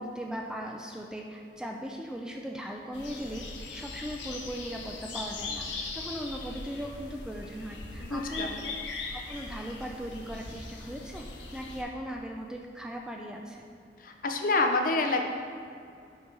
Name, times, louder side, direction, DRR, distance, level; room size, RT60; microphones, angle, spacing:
voice 1, 0.0-3.5 3.7-8.5 9.1-13.6, equal, 5° right, 1 dB, 0.3 m, -38 dB
sound 1, 2.9-11.8, left 3 dB, 90° left, 0.8 m, -40 dB
voice 2, 8.0-8.6 14.0-15.2, left 3 dB, 50° left, 4 dB, 0.5 m, -27 dB
6.3 x 4.7 x 3.8 m, 2.4 s
head